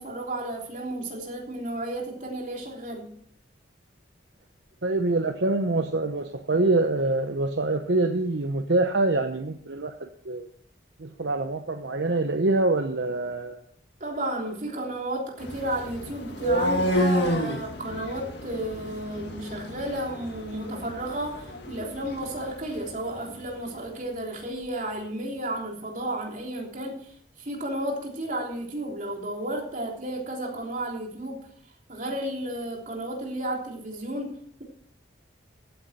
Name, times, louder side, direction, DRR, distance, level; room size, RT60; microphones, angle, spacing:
voice 1, 0.0-3.1 14.0-31.5 31.9-34.6, right 1 dB, 40° right, 0 dB, 3.3 m, -33 dB
voice 2, 4.8-10.5 11.0-13.6, right 2 dB, 70° right, 6 dB, 0.9 m, -25 dB
sound 1, 15.4-23.3, equal, 65° left, 1.9 m, -30 dB
15.0 x 9.3 x 4.3 m, 0.63 s
head